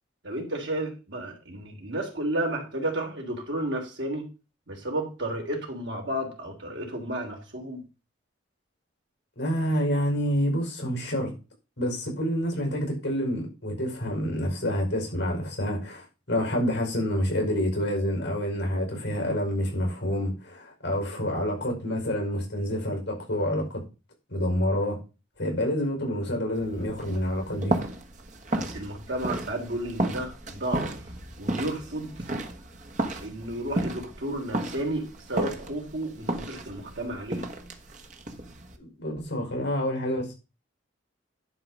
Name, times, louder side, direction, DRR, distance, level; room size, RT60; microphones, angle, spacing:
voice 1, 0.2-4.3 4.7-7.8 28.5-31.0 31.4-32.1 33.2-37.5, right 1 dB, 65° right, 3.3 m, -32 dB
voice 2, 9.4-11.3 11.8-23.8 24.3-25.0 25.4-27.8 38.8-40.3, equal, 60° left, 5.7 m, -28 dB
sound 1, 26.5-38.8, right 1 dB, 40° right, 1.3 m, -33 dB
11.0 x 4.9 x 6.3 m
head